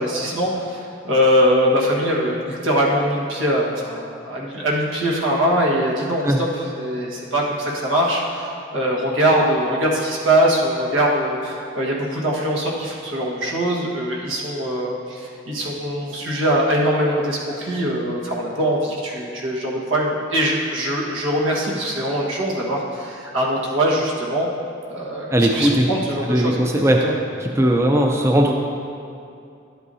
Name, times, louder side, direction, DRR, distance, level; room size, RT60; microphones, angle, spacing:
voice 1, 0.0-24.5 24.9-26.6 26.8-27.1, equal, 90° right, -3 dB, 1.5 m, -22 dB
voice 2, 25.3-25.8 26.3-27.0 27.4-28.5, right 1 dB, 15° right, 1 dB, 0.4 m, -18 dB
12.0 x 8.1 x 2.8 m, 2.5 s
head